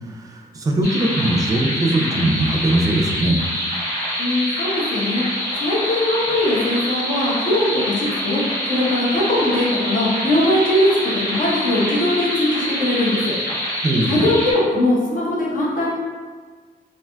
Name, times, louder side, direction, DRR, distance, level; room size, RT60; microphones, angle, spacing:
voice 1, 0.0-3.4 13.8-14.3, right 1 dB, 25° right, 0 dB, 0.3 m, -20 dB
sound 1, 0.8-14.5, equal, 80° left, 1.5 m, -25 dB
voice 2, 4.2-5.3 5.6-8.4 8.7-11.1 11.4-13.4 14.1-15.9, left 1 dB, 60° left, -5 dB, 0.8 m, -20 dB
3.3 x 2.5 x 2.2 m, 1.5 s
wide cardioid pair, 165°, 15 cm